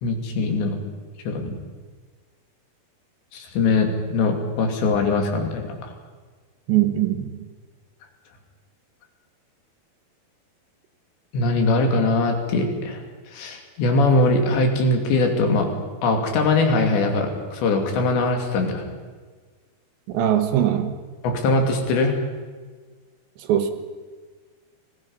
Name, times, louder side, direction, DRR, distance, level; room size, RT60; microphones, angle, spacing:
voice 1, 0.0-0.8 1.3-1.6 3.3-5.9 11.3-13.0 13.3-15.7 16.0-18.8 21.2-22.2, left 2 dB, 85° left, 3 dB, 5.0 m, -21 dB
voice 2, 6.7-7.4 20.1-20.9 23.4-23.7, right 11 dB, 85° right, 7 dB, 3.9 m, -21 dB
29.5 x 21.0 x 5.6 m, 1.5 s
omnidirectional pair, 4.9 m